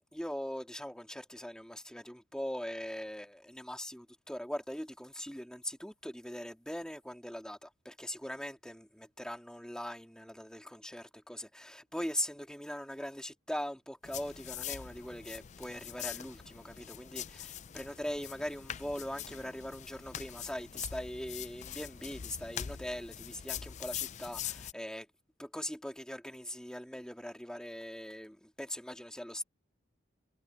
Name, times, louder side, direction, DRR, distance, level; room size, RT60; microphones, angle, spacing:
voice 1, 0.0-25.1 25.4-29.4, equal, 5° left, 3.1 m, -41 dB
sound 1, 14.0-24.7, left 10 dB, 35° left, 0.4 m, -43 dB
head